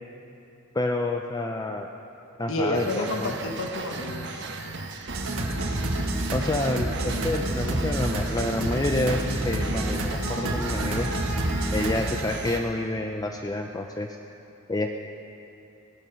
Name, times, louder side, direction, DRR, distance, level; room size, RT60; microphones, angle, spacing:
voice 1, 0.7-1.9 2.4-3.4 6.3-11.1 11.7-14.1 14.7-14.9, left 2 dB, 20° left, 4 dB, 0.4 m, -28 dB
voice 2, 2.5-4.5, left 1 dB, 70° left, 3 dB, 1.2 m, -30 dB
sound 1, 2.7-12.6, right 3 dB, 55° right, 1.2 m, -37 dB
sound 2, 5.1-12.2, right 1 dB, 80° right, 1.5 m, -28 dB
17.5 x 12.5 x 5.4 m, 2.8 s
head